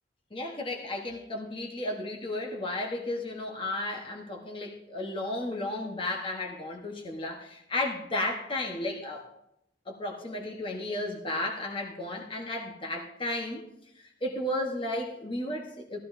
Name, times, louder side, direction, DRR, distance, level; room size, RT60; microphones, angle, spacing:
voice 1, 0.3-9.3 9.9-13.6 13.9-16.0, left 1 dB, 30° left, 1 dB, 1.1 m, -33 dB
15.5 x 13.5 x 2.7 m, 0.83 s
head